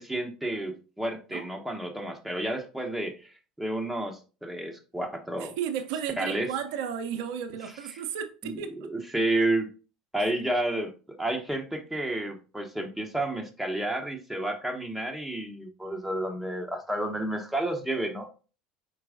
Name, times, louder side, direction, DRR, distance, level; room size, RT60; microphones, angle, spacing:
voice 1, 0.0-3.2 3.6-5.5 6.2-6.5 8.4-9.7 10.1-10.9 11.2-18.3, right 1 dB, 5° right, 0.9 m, -31 dB
voice 2, 5.4-8.9 10.2-10.3, right 8 dB, 65° right, 0.5 m, -34 dB
4.7 x 4.5 x 2.5 m
hypercardioid pair, 70°, 4 cm